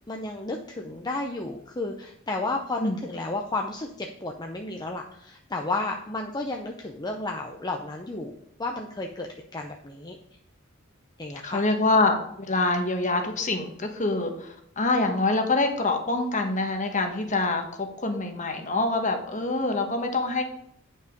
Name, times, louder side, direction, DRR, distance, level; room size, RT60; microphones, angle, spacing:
voice 1, 0.1-8.3 8.6-10.2 11.2-11.6, left 2 dB, 20° left, 2 dB, 0.6 m, -32 dB
voice 2, 11.4-20.4, left 2 dB, 40° left, 5 dB, 1.3 m, -25 dB
9.2 x 5.5 x 5.2 m, 0.71 s
head